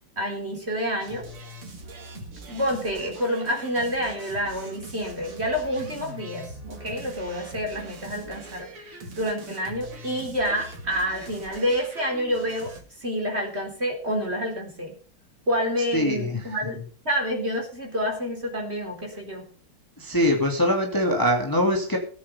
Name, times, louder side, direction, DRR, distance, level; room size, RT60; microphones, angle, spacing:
voice 1, 0.2-1.2 2.5-12.7 13.0-14.9 15.5-16.8 17.0-19.4, equal, 30° right, 2 dB, 4.1 m, -28 dB
sound 1, 1.0-12.8, right 2 dB, 85° right, 3.6 m, -42 dB
voice 2, 15.9-16.5 20.0-22.0, left 1 dB, 10° left, 1 dB, 2.4 m, -23 dB
18.5 x 8.1 x 5.6 m, 0.41 s
omnidirectional pair, 2.4 m